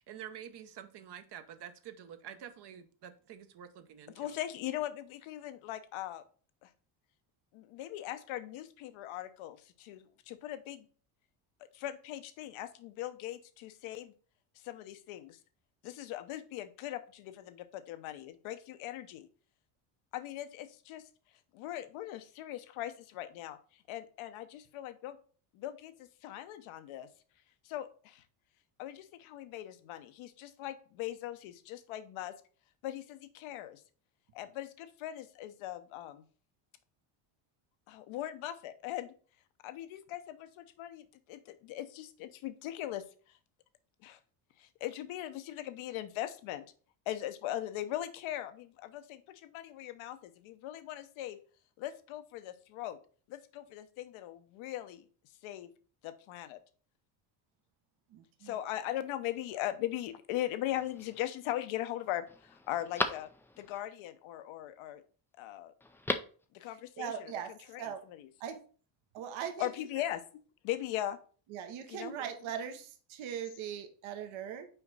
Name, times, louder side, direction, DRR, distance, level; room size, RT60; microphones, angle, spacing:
voice 1, 0.0-4.4, right 9 dB, 55° right, 9 dB, 1.0 m, -48 dB
voice 2, 4.2-6.2 6.6-6.7 7.5-10.9 11.6-14.1 14.6-15.4 15.8-19.3 20.1-21.1 21.5-25.2 25.5-27.1 27.6-28.2 28.8-32.3 32.8-33.8 34.3-36.3 37.9-39.1 39.6-43.4 44.0-44.2 44.6-46.6 47.1-51.4 51.8-53.0 53.3-55.0 55.4-55.7 56.0-56.6 58.4-63.3 63.6-65.0 65.4-65.7 66.5-67.3 67.7-68.3 69.6-70.2 70.6-71.2 71.9-72.1, left 13 dB, 70° left, 10 dB, 0.9 m, -40 dB
voice 3, 58.1-58.6 67.0-67.5 67.8-68.0 68.4-68.6 69.1-69.7 71.5-74.7, right 8 dB, 70° right, 7 dB, 1.2 m, -40 dB
Telephone, 60.7-61.3 61.8-61.9 62.3-63.8 65.8-66.4 66.7-66.8, left 2 dB, 5° left, 0.3 m, -37 dB
5.7 x 4.6 x 4.0 m, 0.40 s
cardioid pair, 110°, 49 cm